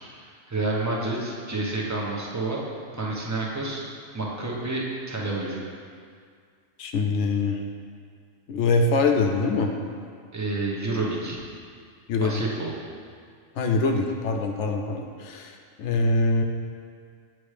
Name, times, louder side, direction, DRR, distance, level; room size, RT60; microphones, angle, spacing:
voice 1, 0.0-2.6 2.9-3.8 4.1-5.6 10.3-11.4 12.2-12.7, right 2 dB, 15° right, -4 dB, 0.8 m, -29 dB
voice 2, 6.8-7.6 8.5-9.7 12.1-12.4 13.6-15.5 15.8-16.4, left 3 dB, 80° left, 3 dB, 0.9 m, -23 dB
8.7 x 3.1 x 4.9 m, 2.1 s
omnidirectional pair, 1.2 m